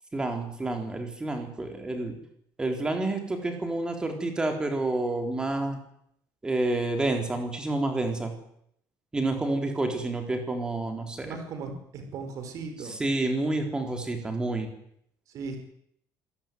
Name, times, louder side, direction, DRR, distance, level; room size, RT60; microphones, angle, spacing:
voice 1, 0.1-2.2 2.6-5.8 6.4-8.3 9.1-11.4 13.0-14.7, right 2 dB, 10° right, 4 dB, 4.0 m, -29 dB
voice 2, 11.2-13.0 15.3-15.6, right 4 dB, 50° right, 7 dB, 5.4 m, -37 dB
26.0 x 17.0 x 9.4 m, 0.72 s
cardioid pair, 175°, 7 cm